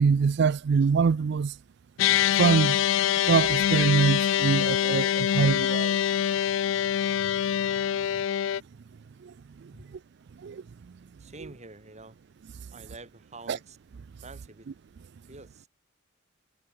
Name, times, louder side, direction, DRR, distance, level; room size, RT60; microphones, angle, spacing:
voice 1, 0.0-1.5 2.4-2.8 3.3-6.0 9.2-9.3 10.4-10.6 13.5-13.6, right 5 dB, 60° right, 0.4 m, -24 dB
sound 1, 2.0-8.6, left 10 dB, 70° left, 0.3 m, -24 dB
voice 2, 11.2-12.2 12.7-13.8 14.2-14.7 15.3-15.7, right 2 dB, 35° right, 6.2 m, -47 dB
head